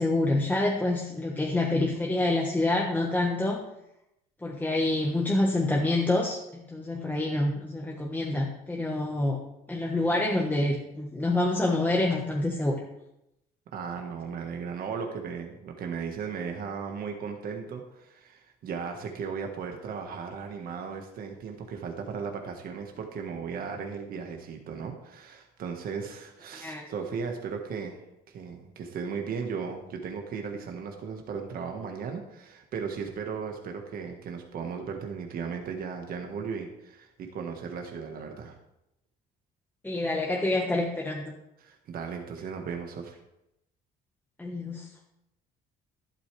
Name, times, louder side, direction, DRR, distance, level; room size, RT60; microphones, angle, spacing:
voice 1, 0.0-3.6 4.4-9.4 9.7-12.8 26.6-26.8 39.8-41.3 44.4-44.9, left 2 dB, 10° left, -1 dB, 1.4 m, -27 dB
voice 2, 13.7-28.0 28.3-38.6 41.6-43.2, right 6 dB, 60° right, 3 dB, 1.6 m, -36 dB
12.0 x 11.5 x 3.4 m, 0.85 s
cardioid pair, 110°, 17 cm